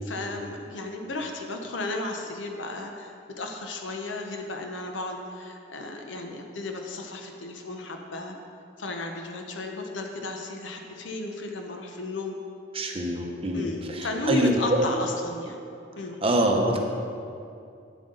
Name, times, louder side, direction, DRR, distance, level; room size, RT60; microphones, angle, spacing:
voice 1, 0.1-8.4 8.8-12.4 13.5-15.6 15.9-16.2, left 2 dB, 70° left, 3 dB, 0.8 m, -34 dB
voice 2, 12.7-14.8 16.2-16.8, right 1 dB, 30° right, 2 dB, 0.8 m, -25 dB
9.2 x 7.7 x 3.9 m, 2.5 s
head